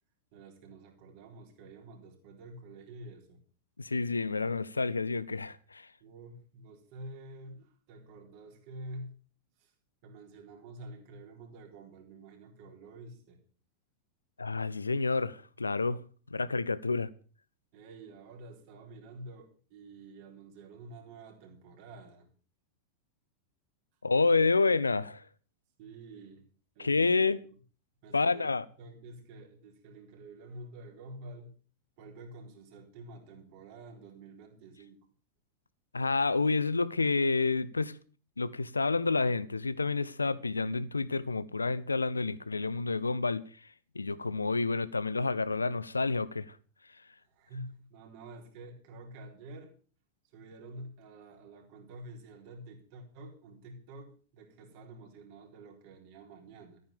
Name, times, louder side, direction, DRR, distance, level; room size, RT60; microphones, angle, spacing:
voice 1, 0.3-3.4 6.0-9.1 9.6-9.7 10.0-13.4 17.7-22.3 25.8-26.5 26.8-27.3 28.0-28.5 28.8-31.5 32.0-35.1 47.3-49.7 50.3-56.8, right 2 dB, 45° right, 4.1 m, -48 dB
voice 2, 3.8-5.9 14.4-16.0 16.3-17.1 24.0-25.2 26.8-27.4 28.1-28.6 35.9-37.9 38.4-43.4 43.9-46.6, left 3 dB, 80° left, 0.7 m, -29 dB
14.0 x 9.6 x 6.9 m
figure-of-eight pair, 90°, 0 cm